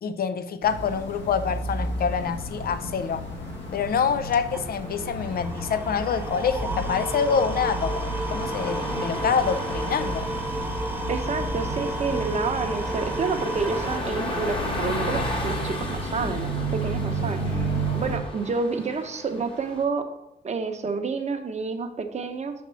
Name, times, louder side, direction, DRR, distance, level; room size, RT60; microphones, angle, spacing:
voice 1, 0.0-3.2 3.7-10.3, left 6 dB, 50° left, 11 dB, 0.6 m, -26 dB
sound 1, 0.6-18.2, right 1 dB, 65° left, 1.8 m, -32 dB
sound 2, 1.8-19.8, left 1 dB, 25° left, 1.2 m, -36 dB
sound 3, 4.1-14.0, right 2 dB, 10° right, 0.6 m, -33 dB
voice 2, 11.1-17.7 17.9-20.0 20.4-22.5, right 4 dB, 35° right, 6 dB, 0.8 m, -29 dB
5.8 x 4.4 x 4.5 m, 0.88 s
cardioid pair, 90°, 20 cm